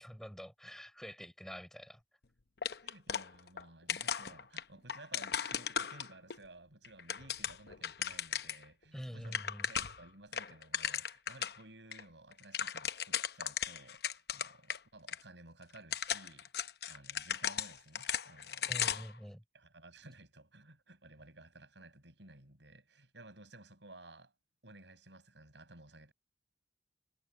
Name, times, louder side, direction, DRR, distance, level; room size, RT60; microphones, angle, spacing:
voice 1, 0.0-2.0 8.9-9.7 18.7-19.4, equal, ahead, 5.8 m, -46 dB
sound 1, 2.6-3.6 3.9-6.4 6.8-8.6 9.0-9.1 9.2-10.0 10.3-11.6 11.9-12.0 12.3-14.8 15.1-15.2 15.7-19.2, left 8 dB, 60° left, 0.8 m, -37 dB
voice 2, 2.8-19.0 19.5-24.3 24.6-26.1, right 2 dB, 80° right, 6.7 m, -56 dB
head